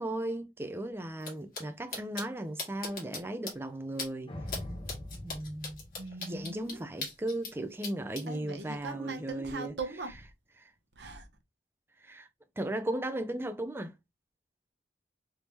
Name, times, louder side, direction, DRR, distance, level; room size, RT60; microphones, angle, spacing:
voice 1, 0.0-4.3 5.2-5.8 6.2-9.8 12.0-12.3 12.6-13.9, right 1 dB, 15° right, 0.4 m, -36 dB
sound 1, 1.2-1.3 1.5-1.6 1.9-2.2 2.6-3.2 3.5-3.6 4.0-4.1 4.5-4.6 4.9-7.5 7.8-8.2, left 4 dB, 55° left, 1.4 m, -38 dB
sound 2, 4.3-6.8, left 1 dB, 30° left, 0.6 m, -42 dB
voice 2, 6.0-6.9 8.3-10.1 11.0-11.3, right 3 dB, 75° right, 0.8 m, -40 dB
3.5 x 2.7 x 3.0 m
head